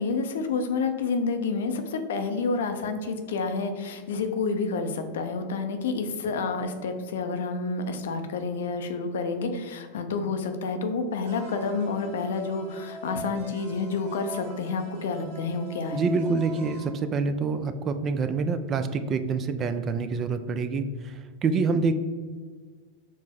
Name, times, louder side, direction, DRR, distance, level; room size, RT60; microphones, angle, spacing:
voice 1, 0.0-16.1, left 4 dB, 80° left, 7 dB, 0.4 m, -29 dB
sound 1, 11.2-16.9, right 1 dB, 65° right, 1.0 m, -42 dB
voice 2, 15.9-21.1 21.4-22.0, right 4 dB, 30° right, 10 dB, 0.3 m, -26 dB
4.5 x 2.0 x 4.2 m, 1.5 s
hypercardioid pair, 110°, 0 cm